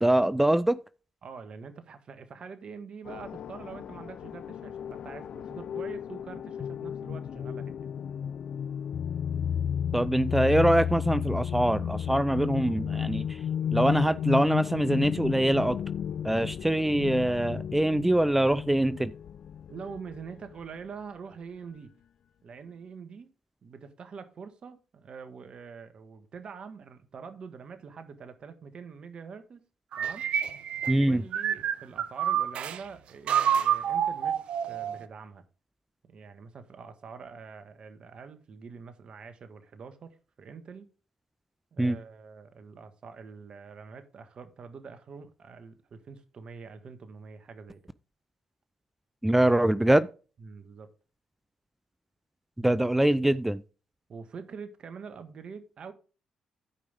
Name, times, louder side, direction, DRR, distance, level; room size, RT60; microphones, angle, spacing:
voice 1, 0.0-0.8 9.9-13.4 13.7-15.8 16.2-19.1 30.9-31.2 41.8-42.0 49.2-50.1 52.6-53.6, right 1 dB, 10° right, 0.5 m, -24 dB
voice 2, 1.2-7.9 19.7-21.9 22.4-23.3 23.6-29.6 30.0-30.3 31.0-35.4 36.1-40.9 41.7-47.8 50.4-50.9 54.1-55.9, right 5 dB, 55° right, 1.5 m, -45 dB
sound 1, 3.1-20.2, left 8 dB, 65° left, 0.5 m, -33 dB
sound 2, 29.9-32.8 33.3-35.1, right 9 dB, 70° right, 0.7 m, -28 dB
13.0 x 5.3 x 3.5 m
supercardioid pair, 60°, 2 cm